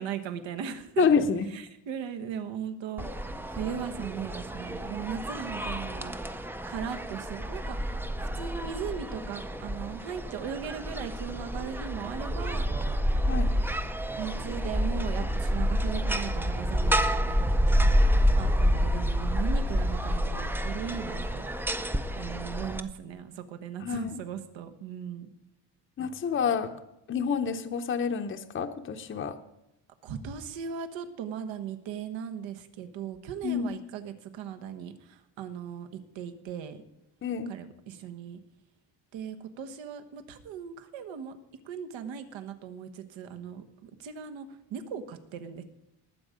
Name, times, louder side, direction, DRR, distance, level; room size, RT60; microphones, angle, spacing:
voice 1, 0.0-1.0 1.5-6.1 6.7-12.7 14.2-17.9 18.4-21.5 22.2-25.3 29.1-29.2 30.0-36.8 37.5-38.4 39.1-41.4 41.6-45.6, right 8 dB, 80° right, 8 dB, 1.4 m, -38 dB
voice 2, 1.0-1.5 13.3-13.5 23.8-24.2 26.0-26.7 27.1-29.4 33.4-33.7 37.2-37.5, left 6 dB, 30° left, 6 dB, 0.7 m, -28 dB
sound 1, 3.0-22.8, equal, 5° right, 0.4 m, -28 dB
19.0 x 7.8 x 5.1 m, 0.88 s
cardioid pair, 155°, 45 cm